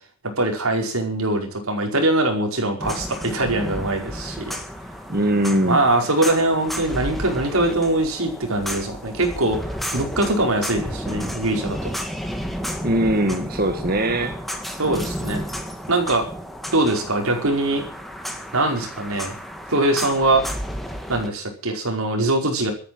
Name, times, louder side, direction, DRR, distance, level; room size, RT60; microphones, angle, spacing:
voice 1, 0.4-4.5 5.6-9.6 9.9-11.9 14.8-15.4 15.9-16.3 16.7-17.8 18.5-19.3 19.7-20.4 21.1-22.7, right 2 dB, 85° right, 2 dB, 4.9 m, -22 dB
sound 1, 2.8-21.3, equal, ahead, 1.9 m, -32 dB
voice 2, 5.1-5.9 12.8-14.4, right 1 dB, 45° right, 5 dB, 1.7 m, -21 dB
13.5 x 10.5 x 7.9 m, 0.42 s
head